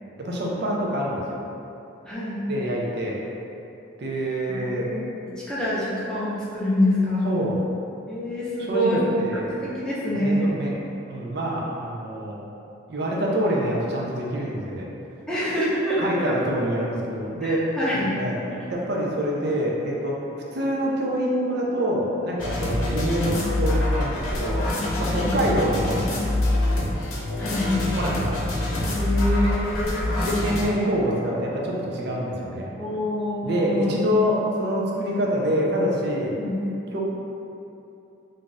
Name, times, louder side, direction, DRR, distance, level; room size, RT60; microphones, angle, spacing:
voice 1, 0.2-1.4 2.5-3.2 4.0-4.9 7.2-7.6 8.7-9.5 10.2-10.8 11.1-12.4 12.9-14.9 16.0-17.7 18.0-18.4 18.7-20.2 20.5-24.7 25.0-25.9 28.0-28.4 30.2-32.7 33.4-36.3 36.9-37.0, equal, 50° right, -3 dB, 0.5 m, -26 dB
voice 2, 2.1-2.4 4.8-7.3 8.1-9.1 9.4-10.5 15.3-16.3 17.4-18.1 18.5-18.7 25.1-25.3 27.4-27.8 29.0-30.0 32.8-34.0 36.4-36.6, left 1 dB, 5° left, -9 dB, 0.5 m, -26 dB
sound 1, 22.4-30.6, left 1 dB, 85° left, 0.7 m, -25 dB
2.6 x 2.3 x 3.9 m, 2.8 s
head